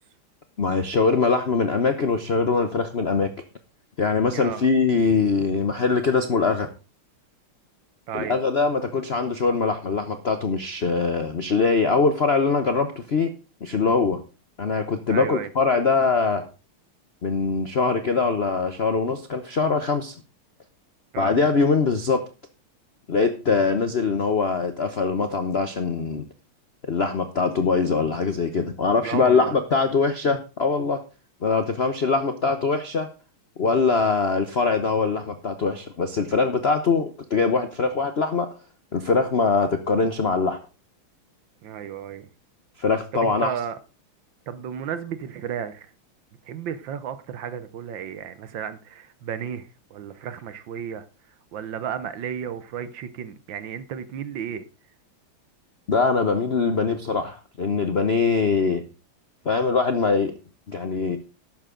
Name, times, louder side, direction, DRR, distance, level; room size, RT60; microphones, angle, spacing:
voice 1, 0.6-3.3 4.0-6.7 8.1-13.3 13.6-14.2 14.6-16.4 17.2-20.1 21.2-22.2 23.1-26.3 26.9-31.0 31.4-33.1 33.6-38.5 38.9-40.6 42.8-43.5 55.9-58.8 59.4-60.3 60.7-61.2, left 4 dB, 55° left, 0.7 m, -22 dB
voice 2, 4.3-4.6 8.1-8.4 15.1-15.5 21.1-21.3 29.0-29.6 41.6-42.3 43.1-43.8 44.5-45.9 46.4-51.1 51.5-54.6, right 8 dB, 65° right, 1.5 m, -33 dB
12.0 x 9.2 x 3.8 m
omnidirectional pair, 2.4 m